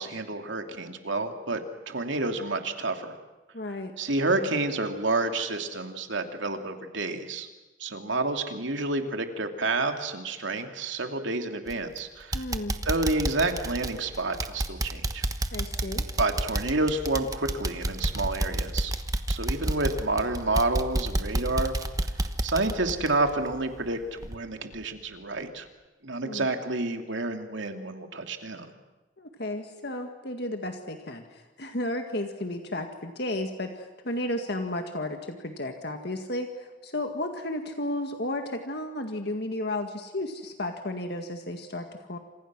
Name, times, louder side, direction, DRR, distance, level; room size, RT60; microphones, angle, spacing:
voice 1, 0.0-1.6 1.9-3.2 4.0-7.5 7.8-12.4 12.9-15.2 16.2-18.9 19.3-21.7 22.4-25.7 26.0-28.7, right 2 dB, 70° right, 5 dB, 2.7 m, -29 dB
voice 2, 3.5-3.9 12.3-12.8 15.5-16.1 26.2-26.5 29.2-42.2, left 1 dB, 55° left, 5 dB, 1.9 m, -33 dB
sound 1, 11.7-12.0 12.3-23.9 24.2-24.4 24.8-24.9, right 1 dB, 15° right, 1.1 m, -30 dB
29.0 x 27.5 x 6.2 m, 1.1 s
head